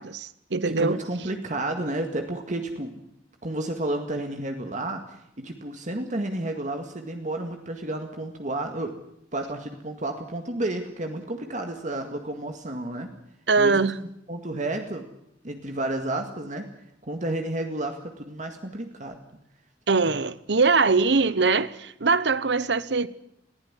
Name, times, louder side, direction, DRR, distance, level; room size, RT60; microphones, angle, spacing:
voice 1, 0.0-1.0 13.5-14.0 19.9-23.1, right 4 dB, 65° right, 1.0 m, -22 dB
voice 2, 0.7-2.9 3.4-8.9 9.3-13.1 13.6-13.9 14.3-15.1 15.4-16.7 17.0-19.2, right 1 dB, 45° right, 1.9 m, -31 dB
21.0 x 16.0 x 9.9 m
head